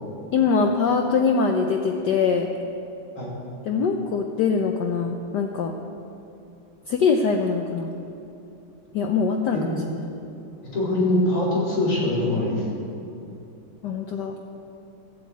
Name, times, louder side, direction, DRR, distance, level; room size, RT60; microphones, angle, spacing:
voice 1, 0.3-2.5 3.7-5.8 6.9-7.9 8.9-9.7 13.8-14.3, left 5 dB, 65° left, 4 dB, 1.1 m, -23 dB
voice 2, 10.7-12.6, left 1 dB, 80° left, -7 dB, 4.8 m, -23 dB
14.0 x 8.2 x 8.3 m, 2.7 s
omnidirectional pair, 2.4 m